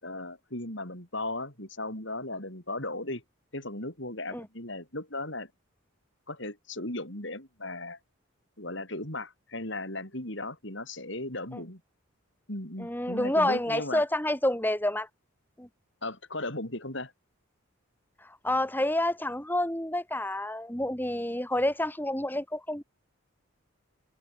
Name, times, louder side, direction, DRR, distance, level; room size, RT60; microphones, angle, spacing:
voice 1, 0.0-3.2 3.5-5.5 6.3-8.0 8.6-11.8 12.5-14.0 16.0-17.1, left 2 dB, 55° left, 6.5 m, -36 dB
voice 2, 12.8-15.1 15.6-15.7 18.2-22.8, left 1 dB, 10° left, 3.1 m, -28 dB
head